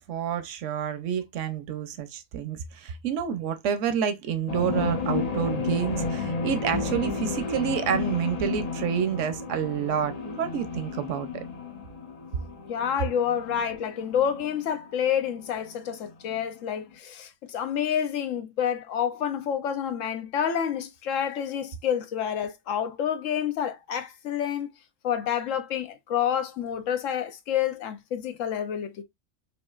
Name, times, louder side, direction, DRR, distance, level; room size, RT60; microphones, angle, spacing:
voice 1, 0.1-11.4, right 8 dB, 75° right, 1.0 m, -29 dB
sound 1, 4.5-16.4, left 4 dB, 45° left, 0.6 m, -32 dB
voice 2, 12.7-24.7 25.0-29.0, left 9 dB, 80° left, 1.1 m, -28 dB
5.1 x 2.6 x 2.3 m
omnidirectional pair, 1.3 m